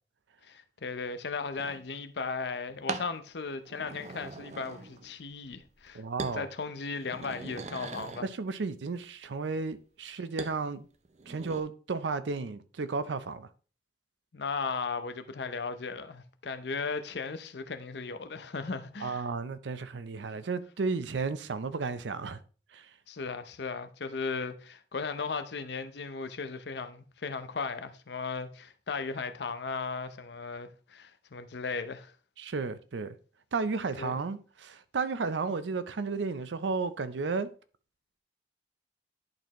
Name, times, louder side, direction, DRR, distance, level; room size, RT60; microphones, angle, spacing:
voice 1, 0.4-6.0 6.3-8.2 14.3-19.3 23.1-32.1 34.0-34.2, left 4 dB, 70° left, 0.6 m, -36 dB
sound 1, 1.6-1.8 2.9-3.1 3.7-5.1 5.4-5.9 6.2-6.4 6.9-8.3 10.4-10.6 11.0-11.6, right 4 dB, 40° right, 0.5 m, -40 dB
voice 2, 5.9-6.5 8.2-10.9 11.3-13.5 19.0-22.4 22.7-22.9 32.4-33.2 33.5-37.5, right 4 dB, 85° right, 0.5 m, -33 dB
10.5 x 4.3 x 3.0 m
head